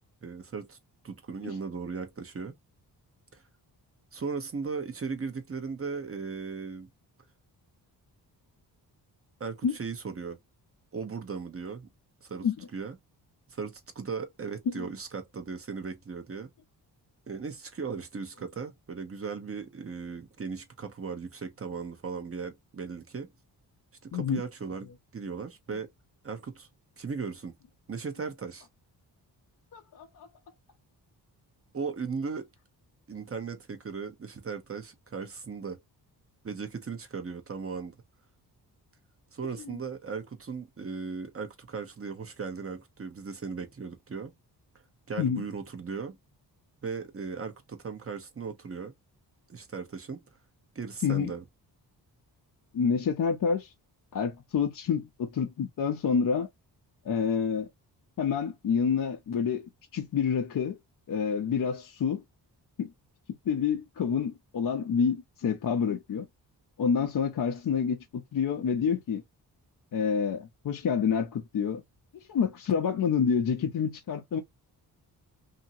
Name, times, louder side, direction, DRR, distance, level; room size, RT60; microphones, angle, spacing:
voice 1, 0.2-0.8 1.0-2.5 3.3-3.4 4.1-6.9 9.4-10.4 10.9-11.9 12.2-12.5 12.7-13.0 13.5-16.5 17.3-23.3 24.0-25.9 26.2-26.7 27.0-27.5 27.9-28.7 31.7-32.5 33.1-35.8 36.4-38.0 39.3-44.3 45.1-46.2 46.8-48.9 49.5-50.2 50.7-51.4, right 5 dB, 35° right, 0.9 m, -37 dB
voice 2, 29.7-30.3 39.7-39.8 45.2-45.4 51.0-51.3 52.7-53.7 54.1-56.5 57.0-57.7 58.2-59.6 59.9-60.8 61.1-62.2 62.8-62.9 63.5-66.3 66.8-69.2 69.9-71.8 72.3-74.4, left 6 dB, 55° left, 0.7 m, -28 dB
2.8 x 2.8 x 2.7 m
cardioid pair, 80°, 41 cm